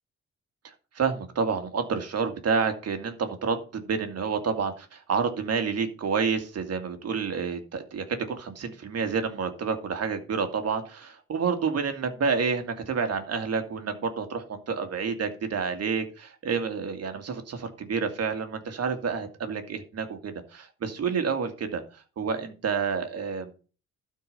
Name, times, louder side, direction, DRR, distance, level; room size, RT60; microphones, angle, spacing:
voice 1, 0.6-21.8 22.2-23.5, right 5 dB, 55° right, 7 dB, 2.2 m, -29 dB
12.5 x 4.7 x 6.7 m, 0.36 s
cardioid pair, 90°, 30 cm